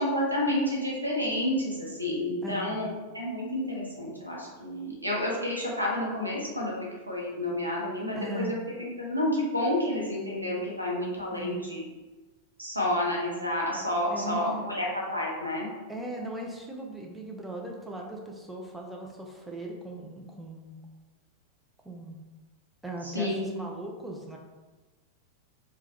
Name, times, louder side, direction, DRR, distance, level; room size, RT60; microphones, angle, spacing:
voice 1, 0.0-2.9 3.1-11.8 12.6-15.7 23.0-23.5, left 1 dB, 85° right, -3 dB, 0.8 m, -30 dB
voice 2, 2.4-2.9 8.1-8.6 11.3-11.7 14.1-14.7 15.9-20.8 21.8-22.2 22.8-24.4, right 1 dB, 5° right, -1 dB, 0.5 m, -38 dB
2.9 x 2.2 x 3.6 m, 1.2 s
figure-of-eight pair, 90°, 0 cm